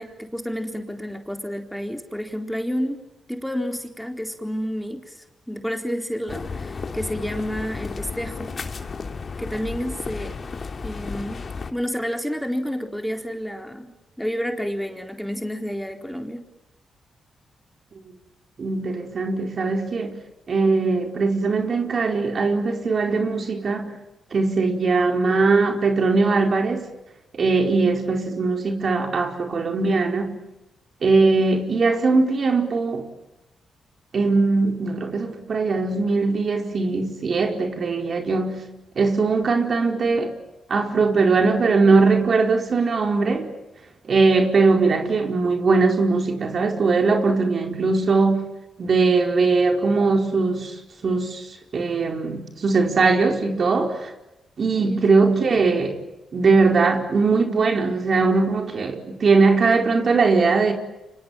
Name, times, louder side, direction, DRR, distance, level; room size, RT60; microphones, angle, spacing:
voice 1, 0.0-3.0 3.3-8.5 9.4-10.4 10.8-13.9 14.2-16.5 54.8-55.3, equal, 5° left, 4.1 m, -30 dB
sound 1, 6.3-11.7, left 4 dB, 50° left, 3.1 m, -33 dB
voice 2, 18.6-20.2 20.5-24.0 24.3-26.9 27.3-30.4 31.0-33.1 34.1-38.6 38.9-40.3 40.7-43.5 44.0-48.5 48.8-50.7 51.0-51.5 51.7-54.1 54.6-56.0 56.3-60.7, right 4 dB, 55° right, 4.7 m, -20 dB
29.5 x 25.5 x 7.5 m
supercardioid pair, 60°, 0 cm